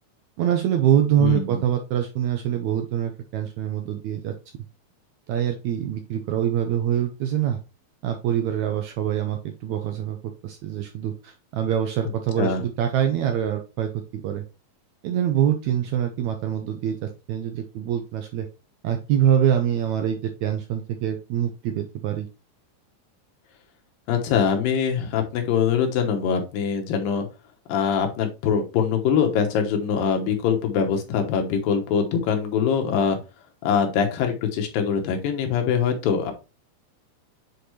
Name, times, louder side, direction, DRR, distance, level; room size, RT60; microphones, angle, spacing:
voice 1, 0.4-4.3 5.3-7.6 8.0-10.2 10.4-14.4 15.0-18.5 18.8-22.3, right 10 dB, 80° right, 6 dB, 1.7 m, -24 dB
voice 2, 1.2-1.6 12.4-12.6 24.1-27.3 27.7-33.2 33.6-36.3, left 7 dB, 85° left, 4 dB, 2.9 m, -23 dB
7.8 x 4.4 x 3.1 m, 0.29 s
omnidirectional pair, 3.9 m